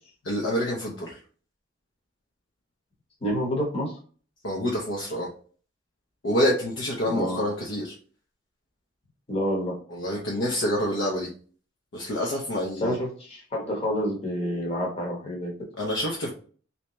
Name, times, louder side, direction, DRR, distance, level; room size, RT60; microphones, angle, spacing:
voice 1, 0.2-1.1 4.4-5.3 6.2-8.0 9.9-11.3 11.9-13.0 15.8-16.3, equal, 70° left, -3 dB, 0.8 m, -27 dB
voice 2, 3.2-4.0 7.1-7.4 9.3-9.8 12.8-15.5, equal, 30° left, -2 dB, 1.0 m, -28 dB
3.3 x 2.8 x 3.0 m, 0.42 s
head